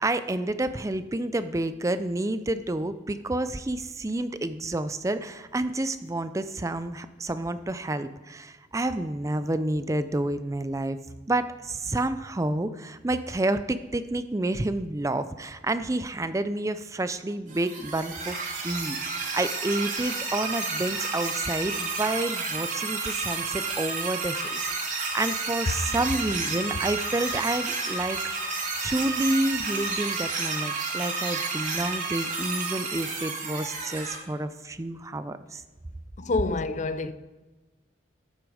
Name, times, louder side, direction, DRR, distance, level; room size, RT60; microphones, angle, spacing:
voice 1, 0.0-11.0 11.3-18.4 18.6-28.2 28.8-35.6, right 2 dB, 15° right, 0.4 m, -29 dB
sound 1, 17.5-34.2, right 4 dB, 45° right, 2.6 m, -31 dB
voice 2, 36.2-37.1, left 3 dB, 40° left, 0.5 m, -27 dB
13.0 x 8.0 x 4.9 m
head